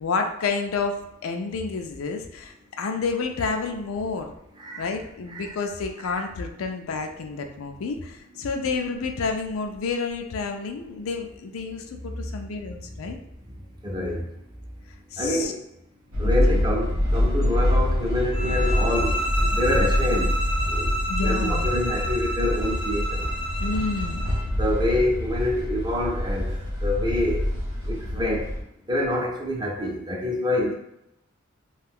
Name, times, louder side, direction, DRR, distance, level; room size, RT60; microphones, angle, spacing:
voice 1, 0.0-4.3 4.8-13.2 15.1-15.5 16.2-16.7 21.1-21.7 23.6-24.2, left 4 dB, 85° left, 4 dB, 0.4 m, -30 dB
voice 2, 13.8-14.3 15.2-15.6 16.2-20.3 20.7-20.9 21.2-23.3 24.5-26.5 26.8-27.4 27.9-28.5 28.9-30.7, left 1 dB, 20° right, -1 dB, 0.5 m, -26 dB
sound 1, 16.1-28.6, left 1 dB, 80° right, 0.8 m, -25 dB
sound 2, 18.3-24.5, right 1 dB, 25° left, 0.5 m, -30 dB
2.5 x 2.3 x 3.5 m, 0.82 s
head